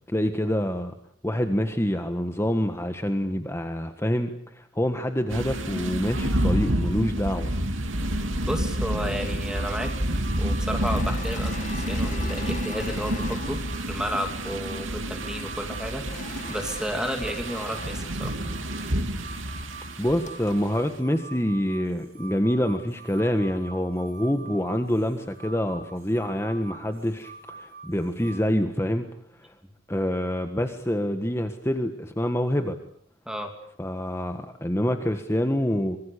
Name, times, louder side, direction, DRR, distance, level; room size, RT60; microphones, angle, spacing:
voice 1, 0.1-0.9 1.2-7.5 20.0-29.1 29.4-29.5 29.9-32.8 33.8-36.0, equal, 15° left, 7 dB, 1.5 m, -26 dB
sound 1, 5.3-20.6, right 1 dB, 90° right, 3.2 m, -29 dB
voice 2, 8.5-9.9 10.4-13.6 13.9-16.0 16.5-18.3 33.3-33.5, equal, 5° right, 5 dB, 2.8 m, -32 dB
sound 2, 9.4-28.5, right 3 dB, 55° right, 6.8 m, -46 dB
Engine / Mechanisms, 10.8-14.6 16.0-18.9 19.6-19.7 20.0-20.5, left 4 dB, 40° left, 1.6 m, -42 dB
26.0 x 24.5 x 8.3 m, 0.63 s
head